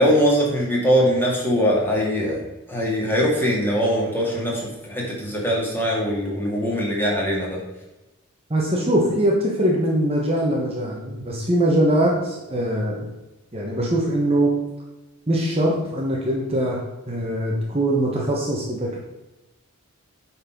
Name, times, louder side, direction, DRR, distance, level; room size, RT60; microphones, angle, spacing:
voice 1, 0.0-2.4 2.7-7.6, equal, 10° left, -3 dB, 2.1 m, -21 dB
voice 2, 8.5-13.1 13.5-14.7 15.3-19.0, right 1 dB, 25° right, -2 dB, 1.1 m, -22 dB
9.0 x 4.4 x 5.9 m, 1.0 s
head